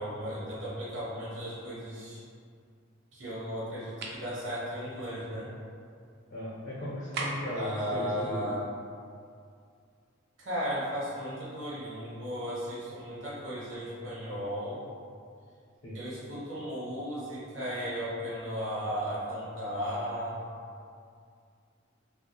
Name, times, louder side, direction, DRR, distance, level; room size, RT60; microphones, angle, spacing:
voice 1, 0.0-2.2 3.1-5.5 7.5-8.6 10.4-14.8 15.9-20.4, equal, 70° right, -8 dB, 0.8 m, -35 dB
sound 1, 4.0-4.3 7.1-7.6, right 3 dB, 50° right, 0.3 m, -35 dB
voice 2, 6.3-8.5 15.8-16.0, equal, 60° left, -8 dB, 0.5 m, -36 dB
2.3 x 2.0 x 2.8 m, 2.3 s
head